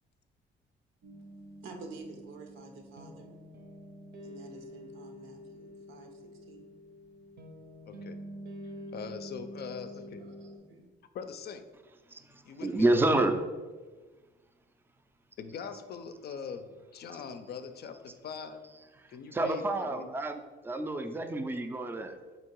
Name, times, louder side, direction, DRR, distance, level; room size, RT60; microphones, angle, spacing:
sound 1, 1.0-10.6, equal, 55° right, 0.6 m, -47 dB
voice 1, 1.6-3.4 4.2-6.7 8.6-8.9 9.7-10.9, right 3 dB, 90° right, 4 dB, 0.7 m, -50 dB
voice 2, 7.9-8.2 8.6-10.2 11.1-11.6 12.4-13.0 15.4-18.6 19.1-20.1, left 6 dB, 55° left, 8 dB, 0.4 m, -42 dB
voice 3, 12.1-13.4 19.0-22.2, right 2 dB, 10° right, 7 dB, 0.3 m, -29 dB
3.8 x 2.8 x 4.5 m, 1.3 s
cardioid pair, 90°, 20 cm